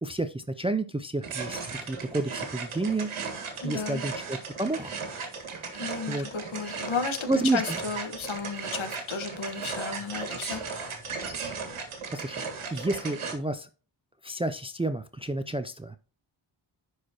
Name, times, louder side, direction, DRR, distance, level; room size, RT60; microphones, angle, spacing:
voice 1, 0.0-3.1 3.6-4.9 6.1-6.3 7.3-7.8 12.1-12.4 12.7-13.7 14.2-16.0, right 2 dB, 10° right, 10 dB, 0.4 m, -30 dB
sound 1, 1.2-13.3, right 5 dB, 75° right, 1.8 m, -36 dB
voice 2, 3.6-4.0 5.7-10.9, left 5 dB, 70° left, 7 dB, 1.5 m, -33 dB
11.0 x 4.8 x 2.9 m, 0.35 s
wide cardioid pair, 105°, 50 cm